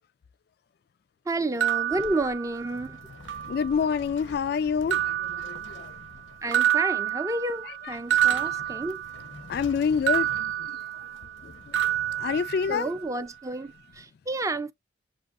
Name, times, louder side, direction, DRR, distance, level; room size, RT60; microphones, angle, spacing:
voice 1, 1.3-3.0 6.4-9.0 12.7-14.7, right 2 dB, 15° right, 0.4 m, -30 dB
sound 1, 1.6-2.9 3.3-4.0 4.9-6.2 6.5-9.5 10.1-11.4 11.7-13.1, right 11 dB, 75° right, 0.7 m, -28 dB
sound 2, 1.7-13.5, left 3 dB, 90° left, 0.9 m, -49 dB
voice 2, 3.5-5.9 7.7-8.0 8.3-8.8 9.5-10.8 11.4-11.7 12.2-12.9, left 6 dB, 55° left, 0.3 m, -28 dB
7.5 x 2.7 x 2.5 m
head